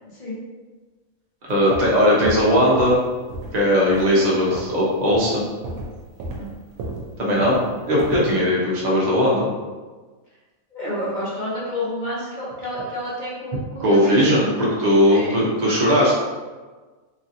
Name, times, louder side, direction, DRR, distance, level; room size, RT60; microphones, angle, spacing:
voice 1, 0.1-0.4 6.4-6.5 10.7-14.4 15.1-15.4, left 1 dB, 45° left, -7 dB, 0.7 m, -29 dB
voice 2, 1.5-3.0 3.5-5.5 7.2-9.5 13.8-16.1, equal, 40° right, -5 dB, 0.7 m, -18 dB
sound 1, 1.5-3.0 3.3-3.6 3.9-4.8 5.1-5.3 5.6-8.3, right 2 dB, 90° right, 1.1 m, -32 dB
3.1 x 2.7 x 2.6 m, 1.4 s
omnidirectional pair, 1.5 m